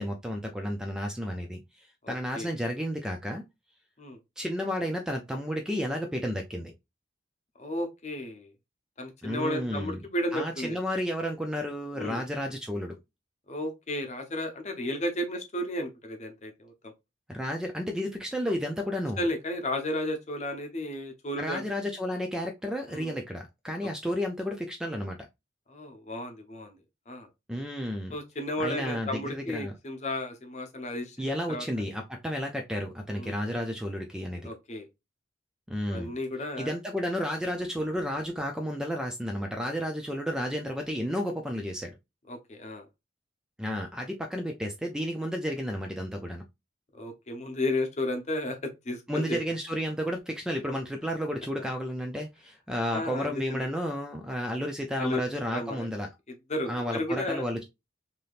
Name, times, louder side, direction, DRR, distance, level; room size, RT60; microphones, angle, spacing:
voice 1, 0.0-3.4 4.4-6.7 9.2-10.0 10.3-13.0 17.3-19.2 21.4-25.2 27.5-28.1 28.6-29.7 31.2-34.5 35.7-36.1 36.6-42.0 43.6-46.4 49.1-56.1 56.7-57.6, equal, 5° right, 0.3 m, -32 dB
voice 2, 2.0-2.5 4.0-4.2 7.6-8.5 9.0-10.8 11.9-12.2 13.5-16.9 19.2-21.6 22.9-23.1 23.8-23.9 25.7-26.8 27.1-27.3 28.1-31.6 33.2-33.4 34.4-34.9 35.9-36.7 42.3-42.9 46.9-49.4 52.9-53.6 55.0-55.2 55.5-55.9 56.5-57.5, left 1 dB, 35° left, 0.7 m, -33 dB
3.4 x 2.7 x 2.4 m
head